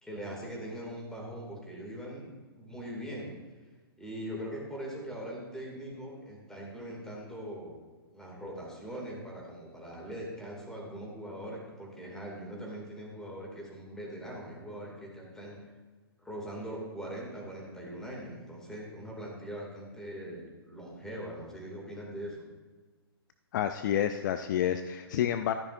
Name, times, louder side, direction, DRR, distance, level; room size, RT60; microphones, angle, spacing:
voice 1, 0.0-3.3 4.0-7.8 8.1-15.7 16.2-22.5, equal, 5° left, -3 dB, 2.5 m, -41 dB
voice 2, 23.5-25.5, left 10 dB, 50° left, 9 dB, 0.4 m, -29 dB
13.0 x 10.5 x 2.6 m, 1.3 s
hypercardioid pair, 125°, 13 cm